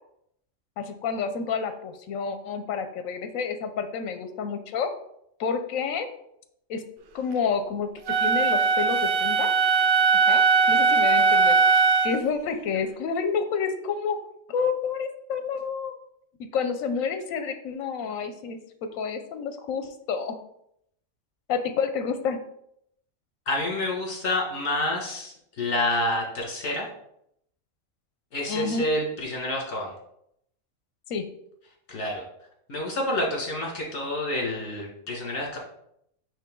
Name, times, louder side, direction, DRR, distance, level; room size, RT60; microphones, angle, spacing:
voice 1, 0.8-4.9 5.4-6.1 6.7-6.9 7.1-9.5 10.3-14.2 14.5-15.9 16.5-18.6 18.9-20.4 21.5-22.4 28.5-28.8 31.1-31.2, left 6 dB, 85° left, 8 dB, 1.1 m, -29 dB
Wind instrument woodwind instrument, 8.1-12.2, right 5 dB, 65° right, 0.5 m, -20 dB
voice 2, 23.5-26.9 28.3-29.9 31.9-32.2 32.7-35.6, left 1 dB, 60° left, -1 dB, 2.0 m, -28 dB
8.6 x 3.1 x 3.7 m, 0.73 s
omnidirectional pair, 1.4 m